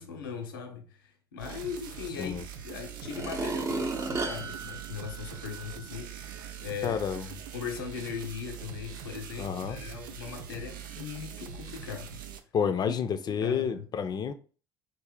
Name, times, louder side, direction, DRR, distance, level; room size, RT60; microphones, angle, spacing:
voice 1, 0.0-7.0 7.5-12.2 13.3-13.9, left 7 dB, 80° left, 0.6 m, -39 dB
sound 1, 1.4-12.4, right 8 dB, 80° right, 0.4 m, -43 dB
sound 2, 2.3-2.4 3.0-5.8 6.3-6.4, right 3 dB, 25° right, 0.6 m, -34 dB
voice 2, 6.8-7.3 9.4-9.8 12.5-14.3, left 7 dB, 40° left, 0.5 m, -29 dB
3.2 x 2.6 x 3.7 m
hypercardioid pair, 60°, 11 cm